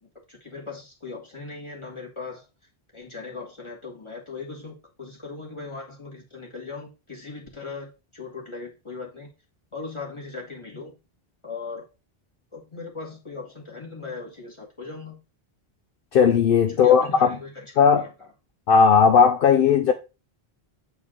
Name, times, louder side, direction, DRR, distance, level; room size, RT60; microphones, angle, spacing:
voice 1, 0.0-2.5 2.9-9.3 9.7-10.9 11.4-11.9 12.5-15.2 16.7-18.3, left 4 dB, 30° left, 1.9 m, -38 dB
voice 2, 16.1-17.3 17.8-18.0 18.7-19.9, left 6 dB, 65° left, 0.8 m, -17 dB
7.8 x 4.1 x 3.8 m
omnidirectional pair, 1.0 m